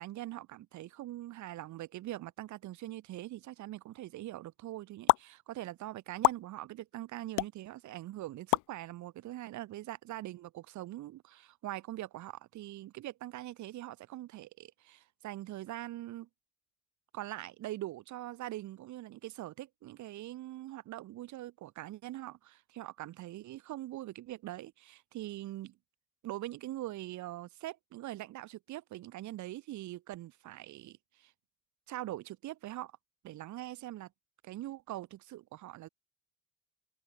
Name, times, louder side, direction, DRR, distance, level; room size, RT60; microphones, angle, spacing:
voice 1, 0.0-16.3 17.1-25.8 26.2-31.3 31.9-32.9 33.2-34.1 34.4-35.9, right 15 dB, 65° right, 7.1 m, -43 dB
sound 1, 5.1-5.2 6.2-6.4 7.4-7.5 8.5-8.7, left 21 dB, 70° left, 1.4 m, -25 dB
supercardioid pair, 80°, 31 cm